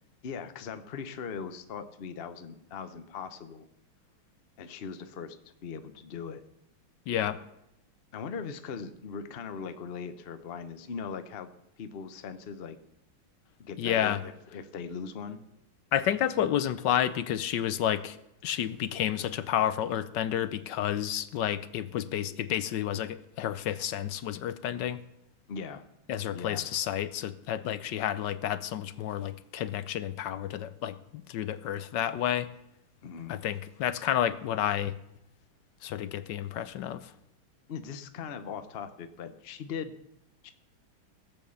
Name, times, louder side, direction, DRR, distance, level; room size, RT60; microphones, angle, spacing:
voice 1, 0.2-3.7 4.6-5.4 5.6-6.4 8.1-11.5 11.8-12.8 13.6-15.4 25.5-25.8 26.3-26.7 33.0-33.4 37.7-39.9 40.4-40.5, left 6 dB, 45° left, 9 dB, 0.7 m, -39 dB
voice 2, 7.1-7.4 13.8-14.2 15.9-18.2 18.4-25.0 26.1-31.0 31.3-32.5 33.3-35.0 35.8-37.1, left 10 dB, 70° left, 14 dB, 1.2 m, -30 dB
17.0 x 7.6 x 7.0 m, 0.84 s
omnidirectional pair, 2.2 m